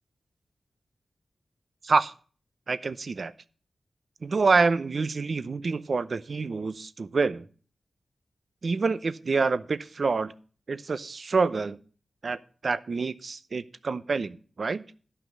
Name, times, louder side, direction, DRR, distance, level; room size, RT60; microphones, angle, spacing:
voice 1, 2.7-3.3 4.2-7.5 8.6-10.3 10.7-11.8 12.2-14.8, right 4 dB, 60° right, 14 dB, 0.7 m, -27 dB
12.5 x 5.7 x 7.9 m, 0.41 s
cardioid pair, 60°, 0 cm